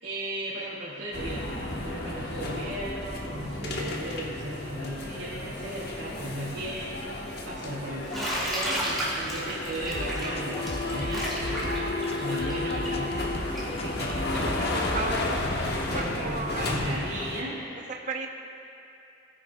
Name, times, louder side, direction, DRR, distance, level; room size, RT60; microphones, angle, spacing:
voice 1, 0.0-6.9 7.4-11.8 12.1-14.5 15.9-17.8, right 1 dB, 75° right, -9 dB, 1.9 m, -36 dB
sound 1, 1.1-17.4, left 2 dB, 60° left, 1.0 m, -33 dB
Bathtub (filling or washing), 8.1-13.8, equal, ahead, 2.5 m, -32 dB
sound 2, 9.8-15.1, left 1 dB, 35° left, 0.6 m, -35 dB
voice 2, 14.5-15.4 16.2-16.6 17.9-18.3, right 3 dB, 40° right, 3 dB, 0.6 m, -34 dB
18.0 x 9.7 x 2.2 m, 2.7 s
head